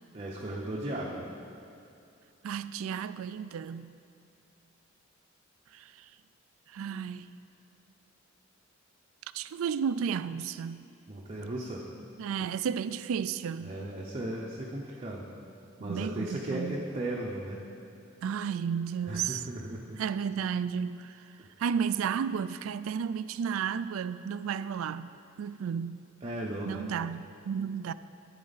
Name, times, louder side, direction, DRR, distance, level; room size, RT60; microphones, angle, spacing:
voice 1, 0.1-1.3 11.1-11.8 12.4-12.5 13.6-15.3 15.8-17.6 19.1-20.0 21.4-21.5 26.2-26.9, right 1 dB, 30° right, 0.7 m, -36 dB
voice 2, 2.4-3.9 5.7-5.8 6.7-7.3 9.3-10.8 12.2-13.7 15.8-16.8 18.2-19.4 20.0-21.1 21.6-25.1 25.4-26.1 26.6-27.9, right 7 dB, 90° right, 0.3 m, -32 dB
11.0 x 8.7 x 4.0 m
head